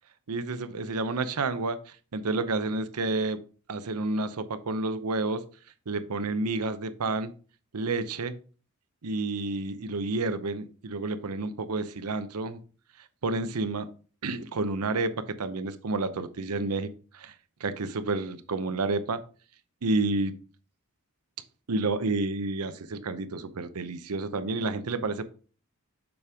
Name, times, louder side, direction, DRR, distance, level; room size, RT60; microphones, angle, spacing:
voice 1, 0.3-1.8 2.1-3.4 3.7-5.4 5.9-7.3 7.7-8.3 9.0-12.6 13.2-13.9 14.2-16.9 17.1-17.3 17.6-19.2 19.8-20.3 21.7-25.2, right 3 dB, 85° right, 11 dB, 0.7 m, -30 dB
7.0 x 5.1 x 3.5 m, 0.38 s
head